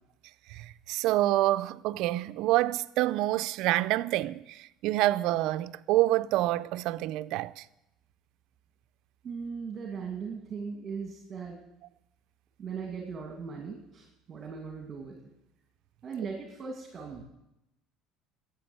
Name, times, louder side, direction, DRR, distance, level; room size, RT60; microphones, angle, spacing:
voice 1, 0.5-7.6, right 16 dB, 70° right, 0.5 m, -27 dB
voice 2, 9.2-11.6 12.6-15.2 16.0-17.2, right 5 dB, 30° right, 2.4 m, -38 dB
13.5 x 8.5 x 8.9 m
cardioid pair, 120°, 0 cm